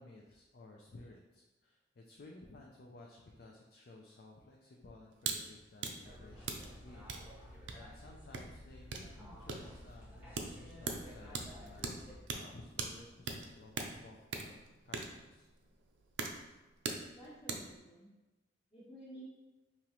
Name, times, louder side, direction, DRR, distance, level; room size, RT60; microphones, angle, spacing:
voice 1, 0.0-15.5, left 2 dB, 55° left, -1 dB, 0.4 m, -56 dB
sound 1, 5.2-5.4 5.7-17.8, right 4 dB, 85° right, 0.5 m, -42 dB
sound 2, 6.0-12.2, left 1 dB, 10° right, 0.7 m, -53 dB
voice 2, 17.1-18.1 18.7-19.2, right 1 dB, 30° left, -12 dB, 1.1 m, -52 dB
5.3 x 2.9 x 3.0 m, 1.1 s
head